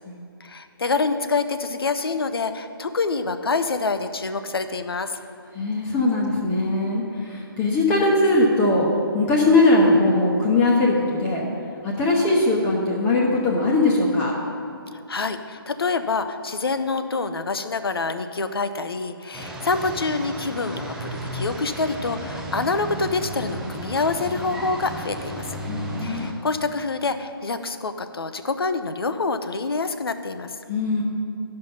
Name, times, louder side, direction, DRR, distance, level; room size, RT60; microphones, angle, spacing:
voice 1, 0.4-5.2 14.9-25.5 26.0-30.6, left 4 dB, 75° left, 9 dB, 0.7 m, -26 dB
voice 2, 5.5-8.9 9.1-11.4 11.8-14.3 25.7-26.3 30.7-31.0, left 2 dB, 15° left, -3 dB, 0.9 m, -20 dB
sound 1, 19.3-26.3, right 1 dB, 5° right, 0.4 m, -33 dB
11.5 x 5.5 x 5.6 m, 2.5 s
figure-of-eight pair, 150°, 13 cm